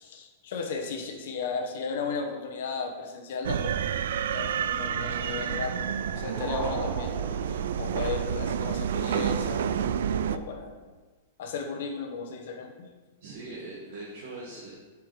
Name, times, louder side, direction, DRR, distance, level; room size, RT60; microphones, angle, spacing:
voice 1, 0.0-3.9 4.3-7.2 7.5-9.8 10.3-10.7 11.4-12.9, left 5 dB, 50° left, 4 dB, 1.0 m, -35 dB
sound 1, 3.4-10.4, right 8 dB, 70° right, 0.3 m, -29 dB
voice 2, 5.0-5.3 13.2-14.7, right 2 dB, 45° right, -6 dB, 1.5 m, -41 dB
sound 2, 5.7-8.3, right 1 dB, 5° right, 1.6 m, -39 dB
7.1 x 4.8 x 4.8 m, 1.3 s
supercardioid pair, 180°, 0 cm